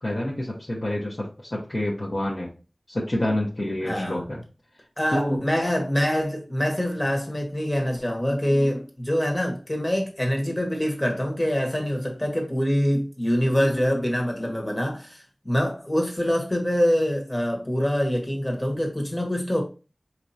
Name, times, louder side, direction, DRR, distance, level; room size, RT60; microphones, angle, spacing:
voice 1, 0.0-2.5 2.9-4.4 5.1-5.4, left 1 dB, 50° left, 1.1 m, -28 dB
voice 2, 3.8-4.2 5.0-19.6, equal, 25° left, 1.4 m, -25 dB
4.7 x 2.8 x 2.7 m
wide cardioid pair, 60°, 0 cm